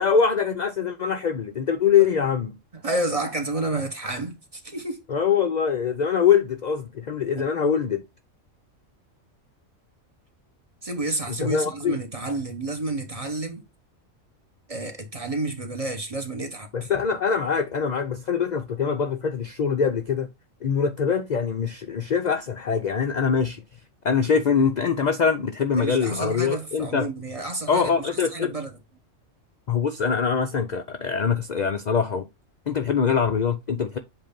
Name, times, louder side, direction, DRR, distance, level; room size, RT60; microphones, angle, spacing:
voice 1, 0.0-2.6 5.1-8.0 11.3-12.0 16.7-20.3 20.6-23.6 24.0-27.1 27.7-28.5 29.7-32.3 32.7-34.0, left 6 dB, 60° left, 0.4 m, -23 dB
voice 2, 2.8-5.0 10.8-13.6 14.7-16.7 25.8-27.9 28.3-28.7, right 2 dB, 30° right, 0.9 m, -30 dB
7.7 x 2.6 x 5.0 m
omnidirectional pair, 1.4 m